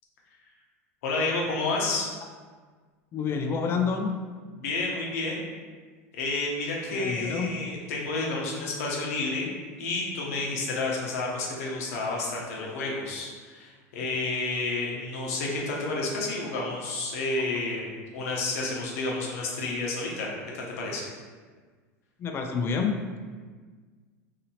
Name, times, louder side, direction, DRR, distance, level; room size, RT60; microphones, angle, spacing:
voice 1, 1.0-2.1 4.6-5.4 6.1-20.3 20.5-21.1, left 3 dB, 75° left, -3 dB, 0.8 m, -30 dB
voice 2, 3.1-4.2 6.9-7.5 12.6-12.8 22.2-22.9, left 5 dB, 30° left, 5 dB, 0.3 m, -28 dB
2.8 x 2.8 x 2.8 m, 1.5 s
supercardioid pair, 120°, 8 cm